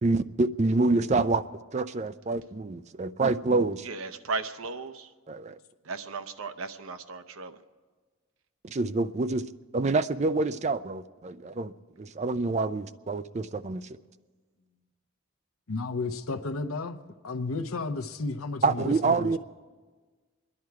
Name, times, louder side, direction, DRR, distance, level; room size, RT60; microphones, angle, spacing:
voice 1, 0.0-1.4 1.7-3.9 5.3-5.6 8.6-9.5 9.7-14.0 18.6-19.4, right 3 dB, 30° right, 12 dB, 0.4 m, -27 dB
voice 2, 3.8-5.1 5.8-7.6, right 4 dB, 85° right, 9 dB, 0.8 m, -36 dB
voice 3, 15.7-17.0 17.2-19.4, left 3 dB, 80° left, 9 dB, 0.8 m, -33 dB
26.5 x 11.0 x 4.7 m, 1.4 s
head